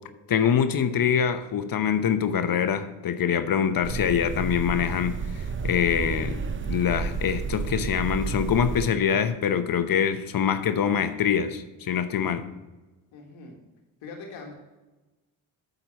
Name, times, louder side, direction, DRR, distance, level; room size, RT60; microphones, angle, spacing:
voice 1, 0.3-6.4 6.7-12.4, left 8 dB, 45° left, 10 dB, 0.9 m, -24 dB
sound 1, 3.8-8.8, right 5 dB, 25° right, 0.7 m, -31 dB
voice 2, 13.1-13.6 14.0-14.5, left 3 dB, 75° left, 1 dB, 1.7 m, -41 dB
9.1 x 3.9 x 7.1 m, 1.1 s
hypercardioid pair, 55°, 47 cm